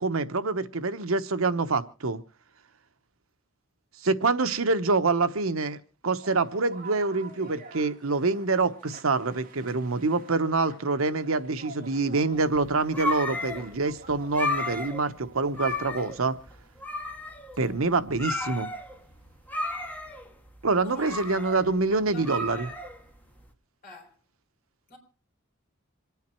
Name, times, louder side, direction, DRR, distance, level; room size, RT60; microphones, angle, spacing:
voice 1, 0.0-2.2 4.0-5.8 6.0-16.4 17.6-18.7 20.6-22.7, right 3 dB, 90° right, 1.0 m, -26 dB
sound 1, 6.2-15.9, right 3 dB, 45° right, 2.3 m, -48 dB
sound 2, 12.4-23.4, left 2 dB, 10° left, 1.8 m, -34 dB
voice 2, 20.8-21.3 21.6-22.8 23.8-24.2 24.9-25.0, left 2 dB, 45° left, 4.8 m, -46 dB
26.5 x 9.4 x 4.4 m
head